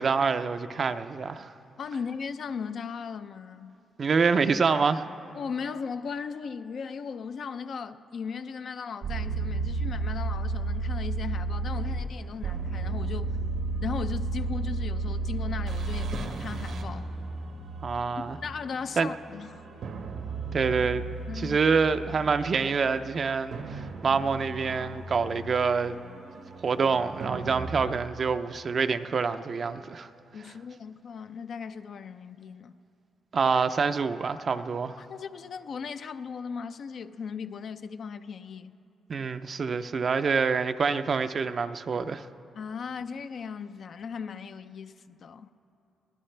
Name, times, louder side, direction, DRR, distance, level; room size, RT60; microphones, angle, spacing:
voice 1, 0.0-1.5 4.0-5.1 17.8-18.4 19.0-19.1 20.5-21.0 21.3-26.0 26.6-30.1 33.3-35.0 39.1-42.3, right 5 dB, 45° right, 0.5 m, -26 dB
voice 2, 1.8-3.7 5.3-13.4 13.8-17.1 18.4-19.6 21.3-21.6 30.3-32.8 35.0-38.8 42.5-45.5, left 6 dB, 60° left, 0.5 m, -37 dB
sound 1, 9.0-27.9, right 3 dB, 80° right, 1.2 m, -34 dB
23.0 x 17.5 x 3.3 m
cardioid pair, 110°, 0 cm